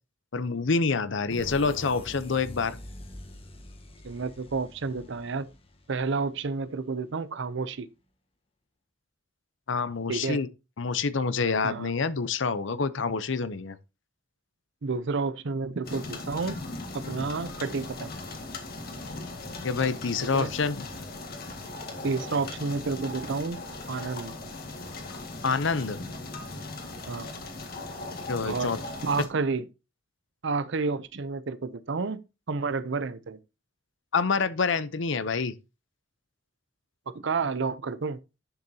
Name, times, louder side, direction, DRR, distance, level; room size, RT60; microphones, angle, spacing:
voice 1, 0.3-2.8 9.7-10.5 10.8-13.8 19.6-20.9 25.4-26.0 28.3-28.8 34.1-35.5, left 4 dB, 65° left, 0.7 m, -27 dB
sound 1, 1.3-6.8, left 1 dB, 30° left, 1.3 m, -45 dB
voice 2, 4.0-5.5 5.9-7.9 10.1-10.4 11.6-11.9 14.8-16.6 16.9-18.1 20.3-20.5 22.0-23.6 23.9-24.3 27.1-27.3 28.4-28.7 29.0-29.6 30.4-32.2 32.5-33.4 37.1-38.2, right 4 dB, 65° right, 0.6 m, -30 dB
sound 2, 15.8-29.3, left 2 dB, 50° left, 1.8 m, -39 dB
9.8 x 6.8 x 2.8 m
head